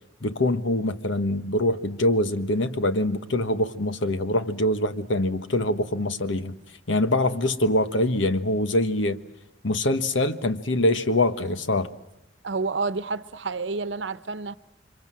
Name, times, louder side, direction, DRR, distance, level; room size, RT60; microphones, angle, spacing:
voice 1, 0.2-6.5 6.9-9.2 9.6-11.9, left 1 dB, 80° left, 1.4 m, -24 dB
voice 2, 12.4-14.5, right 4 dB, 70° right, 1.0 m, -29 dB
29.5 x 25.5 x 7.6 m
head